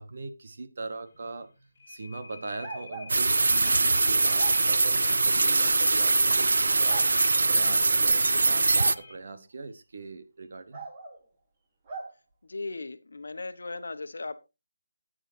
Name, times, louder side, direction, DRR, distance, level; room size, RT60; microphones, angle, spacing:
voice 1, 0.0-1.5 1.9-7.1 7.5-10.8, right 3 dB, 40° right, 9 dB, 1.1 m, -40 dB
Oscillator and Reverb, 1.1-9.1, left 2 dB, 25° left, 2.2 m, -48 dB
sound 1, 2.6-3.1 4.3-4.6 5.9-6.0 6.9-7.1 8.7-9.0 10.7-11.2 11.9-12.1, right 3 dB, 15° right, 1.4 m, -39 dB
sound 2, 3.1-8.9, right 3 dB, 65° right, 0.4 m, -23 dB
voice 2, 12.4-14.5, left 3 dB, 65° left, 10 dB, 1.2 m, -37 dB
13.5 x 9.1 x 2.8 m, 0.25 s
figure-of-eight pair, 180°, 0 cm